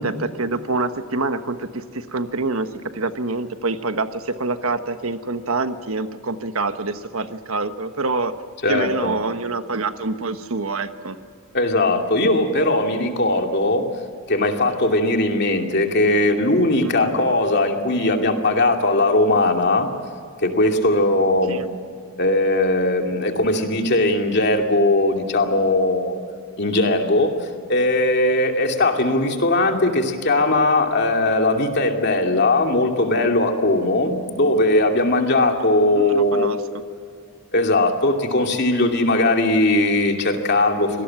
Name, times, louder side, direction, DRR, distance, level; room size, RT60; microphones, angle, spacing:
voice 1, 0.0-2.7 2.9-8.3 8.7-11.2 16.8-17.2 21.5-21.7 36.0-36.6, right 3 dB, 75° right, 9 dB, 1.3 m, -26 dB
voice 2, 8.6-9.1 11.5-13.8 14.3-19.9 20.4-21.6 22.2-26.2 26.6-27.3 27.7-36.5 37.5-41.0, left 2 dB, 50° left, 3 dB, 2.6 m, -19 dB
25.5 x 18.5 x 7.7 m, 2.2 s
head